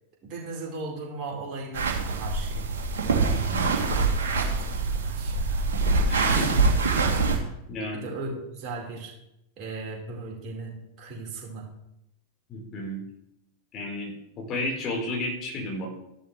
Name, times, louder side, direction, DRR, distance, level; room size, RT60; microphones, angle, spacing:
voice 1, 0.2-2.7 3.9-4.1 4.3-5.6 7.9-9.1 9.6-11.7, right 3 dB, 35° right, -2 dB, 4.5 m, -37 dB
sound 1, 1.7-7.4, right 3 dB, 60° right, 2.9 m, -24 dB
voice 2, 3.3-3.7 6.1-6.6 7.7-8.1 12.5-13.0 13.7-15.9, left 1 dB, 30° left, -1 dB, 4.3 m, -32 dB
14.5 x 12.0 x 3.3 m, 0.84 s
figure-of-eight pair, 90°, 0 cm